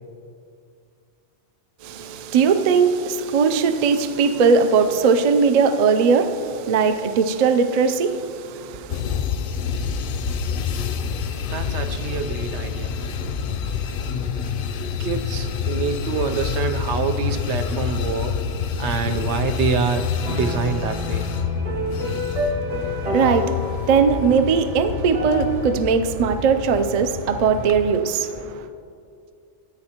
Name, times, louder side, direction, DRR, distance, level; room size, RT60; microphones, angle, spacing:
voice 1, 1.8-9.0 22.7-28.7, right 5 dB, 60° right, 0.4 m, -20 dB
sound 1, 8.9-27.9, left 6 dB, 60° left, 0.6 m, -27 dB
voice 2, 11.4-13.5 15.0-18.4 18.8-21.3, right 6 dB, 75° right, 0.9 m, -26 dB
sound 2, 20.2-25.7, left 1 dB, 40° right, 0.8 m, -30 dB
14.0 x 8.7 x 2.9 m
omnidirectional pair, 1.2 m